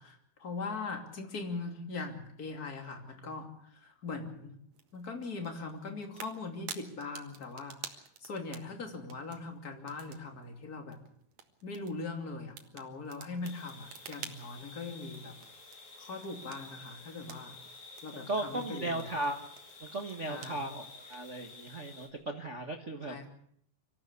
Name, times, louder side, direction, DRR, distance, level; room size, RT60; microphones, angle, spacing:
voice 1, 0.0-4.5 4.9-11.0 11.6-15.3 16.0-17.5 18.0-19.1 20.3-20.7 23.1-23.3, left 3 dB, 30° left, 5 dB, 2.9 m, -41 dB
sound 1, 4.7-21.4, right 7 dB, 55° right, 2.4 m, -52 dB
sound 2, 13.4-22.1, left 3 dB, 80° left, 5.9 m, -51 dB
voice 2, 18.3-19.5 19.8-23.2, right 2 dB, 85° right, 4 dB, 0.6 m, -36 dB
25.0 x 14.5 x 8.2 m, 0.67 s
omnidirectional pair, 4.0 m